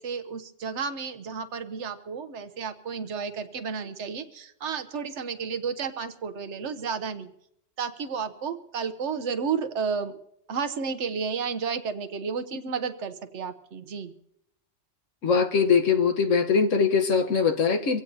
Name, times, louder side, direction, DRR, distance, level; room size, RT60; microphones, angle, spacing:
voice 1, 0.0-7.3 7.8-10.2 10.5-14.1, right 6 dB, 70° right, 10 dB, 1.1 m, -32 dB
voice 2, 15.2-18.0, left 5 dB, 85° left, 5 dB, 1.5 m, -22 dB
24.5 x 16.5 x 2.7 m, 0.78 s
omnidirectional pair, 1.3 m